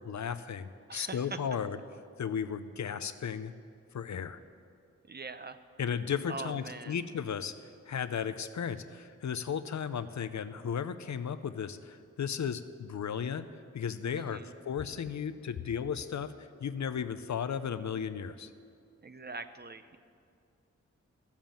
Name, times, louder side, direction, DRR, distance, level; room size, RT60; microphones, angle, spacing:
voice 1, 0.0-1.8 2.2-3.5 3.9-4.4 5.8-13.5 13.7-14.4 14.6-18.5, left 7 dB, 70° left, 12 dB, 0.6 m, -35 dB
voice 2, 0.9-1.4 5.0-5.6 6.3-7.0 14.1-14.5 19.0-20.0, right 3 dB, 35° right, 11 dB, 0.6 m, -42 dB
14.5 x 7.3 x 7.5 m, 2.3 s
wide cardioid pair, 65°, 30 cm